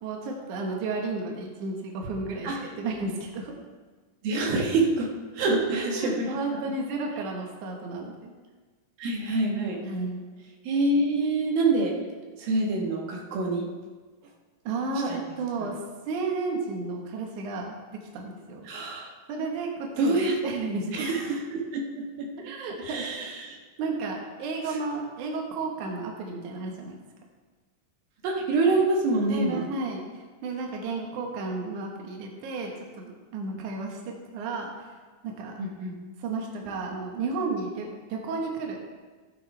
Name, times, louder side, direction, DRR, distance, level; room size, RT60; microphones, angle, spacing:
voice 1, 0.0-3.5 5.7-8.3 9.8-10.3 14.6-15.8 16.1-18.7 19.3-21.0 22.4-23.1 23.8-27.0 29.3-30.1 30.4-34.9 35.2-35.5 36.2-38.8, right 3 dB, 65° right, 0 dB, 2.6 m, -32 dB
voice 2, 4.2-5.1 5.4-6.3 9.0-9.8 10.6-12.0 12.4-13.7 15.1-15.2 18.6-19.1 20.0-20.3 20.9-22.3 22.8-23.6 28.2-29.7 35.6-36.0, right 2 dB, 85° right, -1 dB, 3.3 m, -26 dB
15.5 x 9.6 x 3.4 m, 1.4 s
omnidirectional pair, 4.1 m